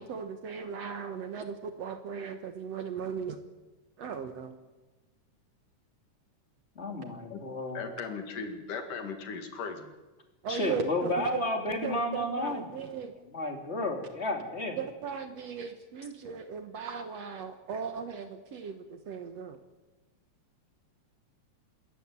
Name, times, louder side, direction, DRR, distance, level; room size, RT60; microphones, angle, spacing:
voice 1, 0.0-3.4 4.0-4.6 10.4-11.4 11.8-13.1 14.8-19.6, right 6 dB, 60° right, 8 dB, 2.1 m, -37 dB
voice 2, 6.7-7.8 10.5-12.7 13.3-14.8, left 1 dB, 20° left, 3 dB, 2.9 m, -32 dB
voice 3, 7.7-9.9, left 5 dB, 75° left, 6 dB, 3.7 m, -37 dB
26.0 x 14.0 x 9.6 m, 1.2 s
omnidirectional pair, 3.7 m